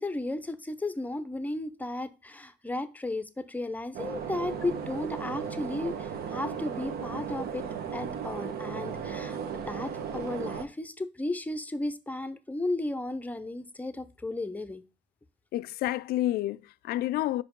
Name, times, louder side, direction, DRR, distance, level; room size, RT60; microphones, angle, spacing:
voice 1, 0.0-7.7 7.9-14.8, left 2 dB, 10° left, 0.7 m, -34 dB
sound 1, 3.9-10.6, right 7 dB, 65° right, 1.1 m, -36 dB
voice 2, 15.5-17.4, left 14 dB, 65° left, 0.4 m, -29 dB
5.4 x 5.0 x 5.2 m
cardioid pair, 110°, 17 cm